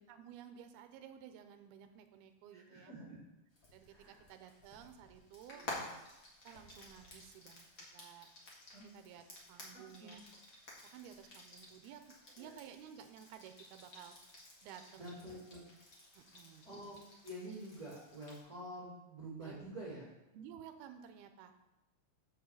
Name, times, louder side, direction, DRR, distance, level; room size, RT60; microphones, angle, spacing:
voice 1, 0.1-2.9 3.7-5.7 6.4-7.7 7.9-8.3 8.9-10.2 10.8-12.0 12.4-14.1 14.6-15.3 16.1-16.7 19.4-19.7 20.3-21.5, right 9 dB, 80° right, 7 dB, 2.4 m, -54 dB
voice 2, 2.5-3.2 3.9-4.2 5.5-5.8 8.7-8.9 10.0-10.1 12.4-12.5 15.0-15.6 16.6-20.1, right 1 dB, 30° right, -8 dB, 2.1 m, -48 dB
Frying (food), 3.5-18.4, left 2 dB, 45° left, 1.1 m, -53 dB
7.1 x 6.3 x 7.2 m, 0.92 s
omnidirectional pair, 5.0 m